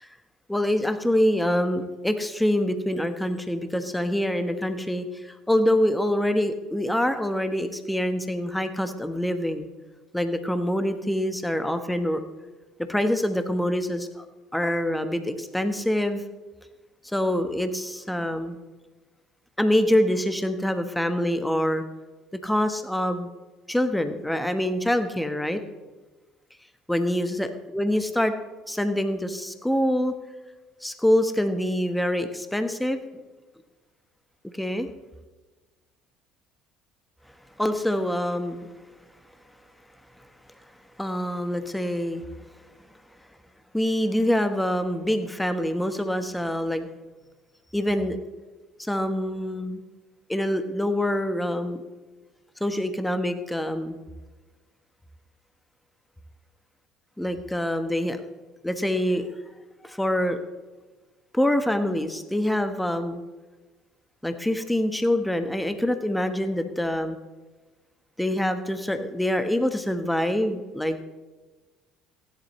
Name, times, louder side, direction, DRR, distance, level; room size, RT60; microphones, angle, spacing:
voice 1, 0.5-9.7 10.1-12.2 12.9-14.3 14.5-16.2 17.1-18.6 19.6-21.8 22.4-23.3 23.7-25.6 26.9-27.5 27.7-28.3 28.7-30.1 30.8-33.0 34.5-34.9 37.6-38.7 41.0-42.2 43.7-46.9 47.7-48.2 48.8-49.8 50.3-51.8 52.6-54.0 57.2-58.2 58.6-59.3 59.8-60.4 61.3-63.2 64.2-67.2 68.2-71.0, left 1 dB, 5° left, 8 dB, 1.3 m, -25 dB
16.0 x 11.0 x 3.2 m, 1.2 s
hypercardioid pair, 65°, 0 cm